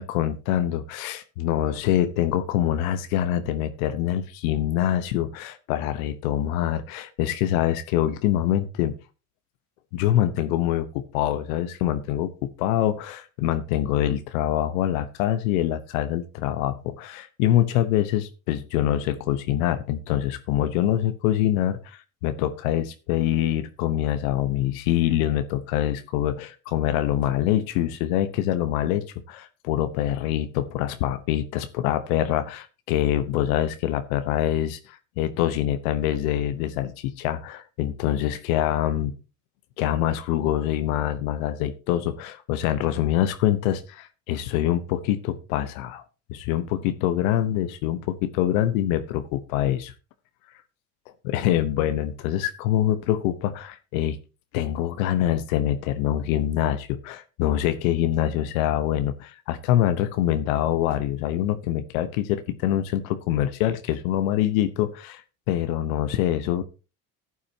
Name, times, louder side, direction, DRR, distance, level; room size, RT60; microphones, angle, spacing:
voice 1, 0.0-9.0 9.9-39.2 39.8-46.0 46.3-49.9 51.2-54.2 54.5-65.2 65.5-66.6, left 12 dB, 90° left, 11 dB, 1.0 m, -25 dB
14.5 x 8.5 x 2.8 m, 0.31 s
supercardioid pair, 75°, 40 cm